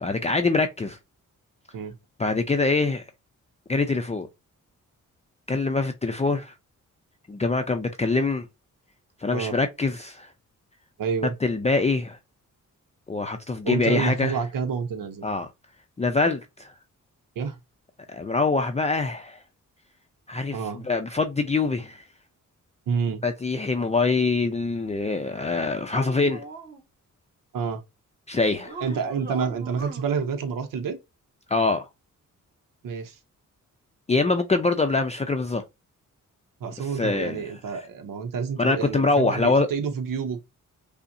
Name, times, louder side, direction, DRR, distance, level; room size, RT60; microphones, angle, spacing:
voice 1, 0.0-1.0 2.2-3.0 3.7-4.3 5.5-6.5 7.3-8.5 9.2-10.3 11.4-12.2 13.1-14.4 15.2-15.5 16.0-16.7 18.1-19.4 20.3-22.0 23.2-26.4 28.3-28.8 31.5-31.9 34.1-35.6 36.8-37.4 38.6-39.7, left 3 dB, 20° left, 0.5 m, -24 dB
voice 2, 11.0-11.4 13.6-15.3 17.4-17.6 20.5-20.9 22.9-23.2 27.5-27.8 28.8-31.0 32.8-33.2 36.6-40.4, right 6 dB, 90° right, 0.7 m, -28 dB
sound 1, 25.5-26.8 28.6-30.1, right 3 dB, 30° right, 1.3 m, -39 dB
5.3 x 2.1 x 2.6 m
cardioid pair, 95°, 32 cm